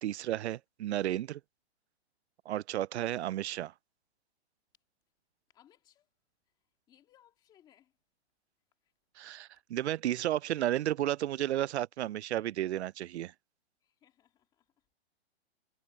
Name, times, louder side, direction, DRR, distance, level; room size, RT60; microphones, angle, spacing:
voice 1, 0.0-1.4 2.5-3.7 9.2-13.3, right 13 dB, 85° right, 0.5 m, -33 dB
voice 2, 5.5-6.1 6.9-8.0 8.8-8.9 10.3-10.5 13.8-14.9, left 11 dB, 15° left, 2.2 m, -65 dB
hypercardioid pair, 175°, 32 cm